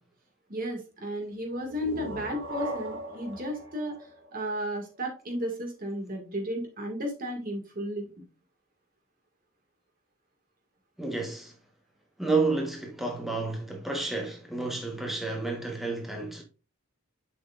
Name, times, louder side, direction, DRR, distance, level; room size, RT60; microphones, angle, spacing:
voice 1, 0.5-4.0 4.3-8.3, equal, 40° right, 2.0 m, -34 dB
sound 1, 1.5-5.1, equal, 65° right, 2.2 m, -39 dB
voice 2, 11.0-11.5 12.2-16.4, right 3 dB, ahead, 1.2 m, -30 dB
7.2 x 6.1 x 2.5 m
head